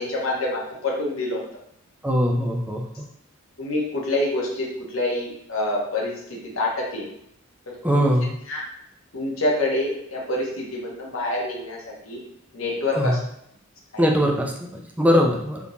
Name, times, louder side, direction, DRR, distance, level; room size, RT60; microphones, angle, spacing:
voice 1, 0.0-1.4 3.6-7.1 7.7-8.1 8.5-8.6 9.1-12.2 12.5-13.2 13.9-14.1, left 2 dB, 75° left, -2 dB, 1.0 m, -27 dB
voice 2, 2.0-2.8 7.8-8.3 12.9-13.2 14.0-15.6, equal, 5° right, 1 dB, 0.4 m, -21 dB
3.5 x 2.8 x 2.6 m, 0.73 s
head